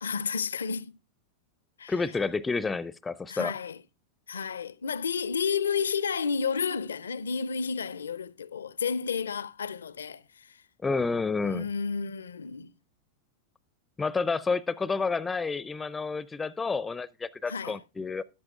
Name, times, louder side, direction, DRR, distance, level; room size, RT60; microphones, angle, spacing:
voice 1, 0.0-1.0 1.8-1.9 3.3-3.8 4.3-10.6 11.4-12.7 17.5-17.8, left 6 dB, 70° left, 0.4 m, -31 dB
voice 2, 1.9-3.5 10.8-11.7 14.0-18.2, left 4 dB, 15° left, 0.4 m, -30 dB
14.0 x 11.5 x 2.3 m
figure-of-eight pair, 90°, 0 cm